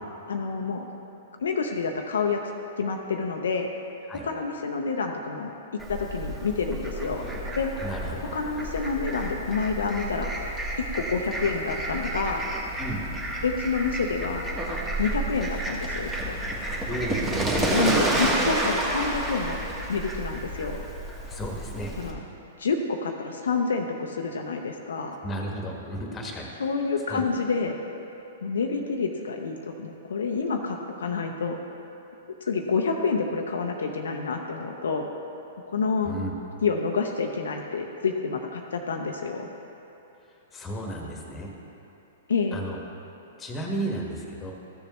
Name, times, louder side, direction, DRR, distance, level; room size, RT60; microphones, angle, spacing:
voice 1, 0.3-0.9 1.4-2.4 2.8-3.7 4.2-5.5 5.9-7.3 7.6-7.7 8.3-10.3 10.9-12.5 13.4-14.5 15.0-16.4 17.7-20.8 22.0-22.2 22.6-25.2 26.6-27.8 28.4-31.6 32.4-35.1 35.7-36.1 36.6-39.5 42.3-42.6, left 4 dB, 70° left, 3 dB, 0.6 m, -28 dB
Fowl, 5.8-22.1, right 1 dB, 15° right, 1.6 m, -30 dB
voice 2, 7.8-8.2 12.8-13.0 16.8-17.9 21.3-21.9 25.2-26.5 27.1-27.3 36.0-36.3 40.5-41.5 42.5-42.8 43.4-44.5, right 1 dB, 20° left, 0 dB, 1.5 m, -33 dB
14.0 x 6.9 x 3.1 m, 2.9 s
figure-of-eight pair, 110°, 0 cm